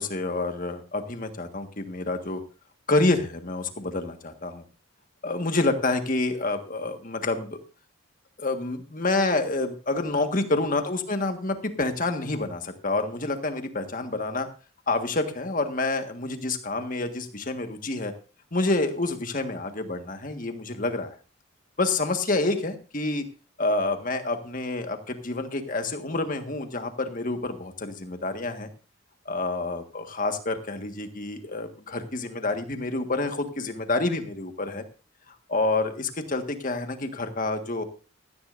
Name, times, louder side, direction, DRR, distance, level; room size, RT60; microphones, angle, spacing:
voice 1, 0.0-2.4 2.9-4.6 5.2-7.6 8.4-14.5 14.9-18.1 18.5-21.1 21.8-23.3 23.6-28.7 29.3-34.8 35.3-37.8, left 2 dB, 40° left, 6 dB, 1.6 m, -28 dB
16.5 x 14.0 x 2.6 m, 0.34 s
head